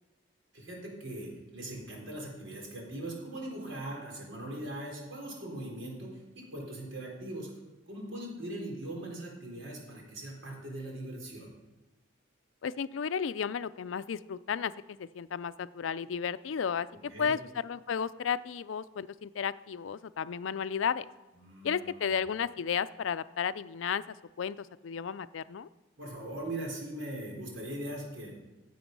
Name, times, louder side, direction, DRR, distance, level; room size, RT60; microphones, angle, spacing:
voice 1, 0.5-7.5 7.9-11.5 16.9-17.3 21.4-22.1 26.0-28.3, right 1 dB, 85° right, -1 dB, 4.1 m, -40 dB
voice 2, 12.6-21.1 21.6-25.7, left 7 dB, 85° left, 15 dB, 0.4 m, -33 dB
16.5 x 7.8 x 5.3 m, 1.1 s
head